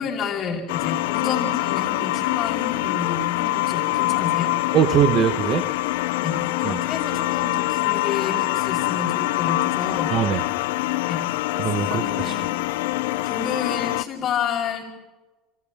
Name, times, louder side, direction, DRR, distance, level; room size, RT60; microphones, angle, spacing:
voice 1, 0.0-4.5 6.2-10.1 11.1-11.2 11.8-12.6 13.2-14.8, left 6 dB, 50° left, -5 dB, 5.0 m, -30 dB
sound 1, 0.7-14.0, left 19 dB, 80° left, 0.6 m, -24 dB
voice 2, 4.7-5.6 6.6-6.8 10.1-10.4 11.5-12.3, right 9 dB, 50° right, 8 dB, 1.2 m, -21 dB
29.0 x 25.5 x 3.6 m, 1.2 s
supercardioid pair, 90°, 0 cm